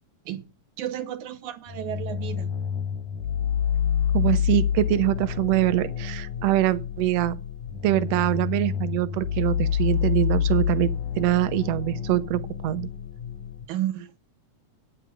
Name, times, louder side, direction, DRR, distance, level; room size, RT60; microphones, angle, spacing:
voice 1, 0.8-2.5 13.7-14.1, right 12 dB, 90° right, 2.7 m, -32 dB
sound 1, 1.7-13.6, left 9 dB, 85° left, 2.6 m, -28 dB
voice 2, 4.1-7.3 7.8-10.9 11.2-12.9, right 16 dB, 70° right, 1.7 m, -24 dB
9.3 x 8.9 x 5.9 m
omnidirectional pair, 3.3 m